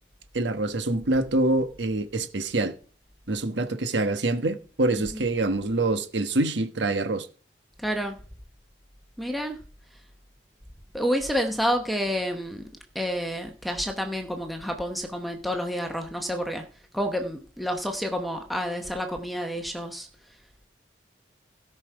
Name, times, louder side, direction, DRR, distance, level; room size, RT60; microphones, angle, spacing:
voice 1, 0.3-2.7 3.3-7.3, right 2 dB, 75° right, 1.3 m, -25 dB
voice 2, 7.8-8.2 9.2-9.6 10.9-12.7 12.9-16.7 16.9-20.1, equal, ahead, 1.0 m, -29 dB
16.5 x 5.8 x 4.8 m
head